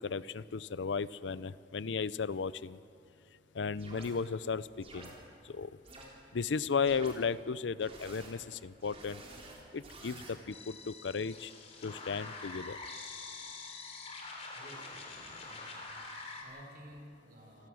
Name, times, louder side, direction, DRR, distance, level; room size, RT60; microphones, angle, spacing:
voice 1, 0.0-2.8 3.5-5.1 5.4-5.7 6.3-9.2 9.7-11.5 11.8-12.8, left 5 dB, 80° left, 18 dB, 0.5 m, -35 dB
sound 1, 3.8-4.1 4.8-5.1 5.8-6.0 6.8-7.1 7.8-8.3 8.8-10.3, right 2 dB, 35° right, 4.0 m, -50 dB
sound 2, 10.5-16.4, left 3 dB, 35° left, 3.3 m, -45 dB
voice 2, 14.5-15.0 15.4-17.7, equal, 55° right, 1 dB, 4.7 m, -54 dB
27.0 x 17.5 x 6.4 m, 2.5 s
head